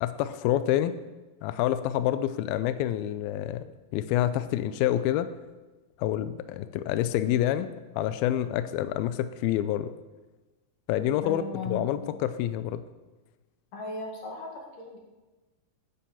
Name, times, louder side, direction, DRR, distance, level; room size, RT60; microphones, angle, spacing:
voice 1, 0.0-1.0 1.4-3.6 3.9-5.3 6.0-9.9 10.9-12.8, left 12 dB, 90° left, 12 dB, 2.1 m, -27 dB
voice 2, 11.2-11.9 13.7-15.0, left 2 dB, 55° left, 1 dB, 3.3 m, -37 dB
10.0 x 8.0 x 7.1 m, 1.2 s
omnidirectional pair, 4.9 m